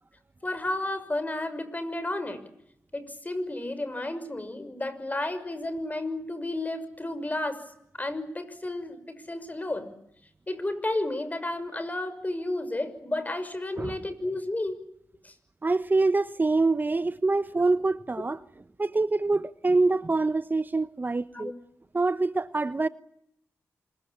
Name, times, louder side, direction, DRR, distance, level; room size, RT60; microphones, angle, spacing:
voice 1, 0.4-2.4 2.9-7.6 8.0-9.9 10.5-14.8 15.2-15.3 17.5-17.6 21.3-21.5, left 2 dB, 25° left, 6.2 m, -32 dB
voice 2, 15.6-18.4 18.8-21.5 21.9-22.9, right 3 dB, 35° right, 1.0 m, -25 dB
25.5 x 23.0 x 8.7 m
supercardioid pair, 40°, 6 cm